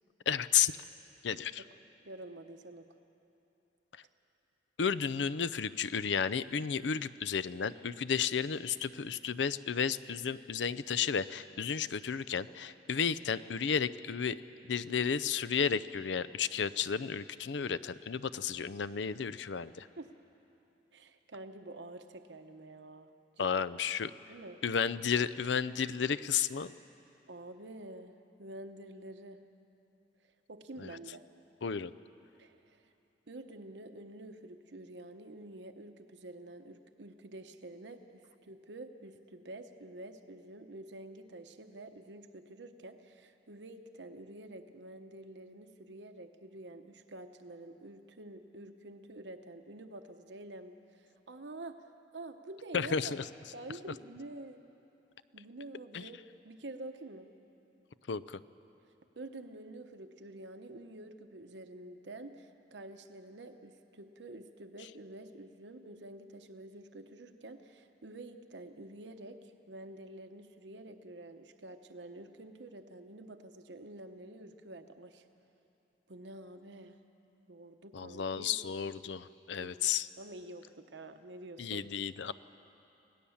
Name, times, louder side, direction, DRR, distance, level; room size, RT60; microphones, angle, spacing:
voice 1, 0.3-0.7 1.2-1.6 4.8-14.4 14.7-19.9 23.4-24.1 24.6-26.7 30.8-30.9 31.6-31.9 52.7-53.2 55.9-56.0 58.1-58.4 77.9-80.1 81.6-82.3, left 7 dB, 70° left, 16 dB, 0.5 m, -32 dB
voice 2, 2.0-2.9 20.0-20.1 20.9-23.1 23.4-23.5 24.3-24.6 27.3-29.4 30.5-31.2 32.4-32.9 33.3-51.8 52.1-53.2 53.5-54.6 55.3-57.3 59.2-75.3 76.1-77.0 77.5-78.6 79.6-79.8 80.2-81.9, right 2 dB, 70° right, 7 dB, 0.9 m, -48 dB
25.5 x 17.5 x 7.2 m, 2.9 s
head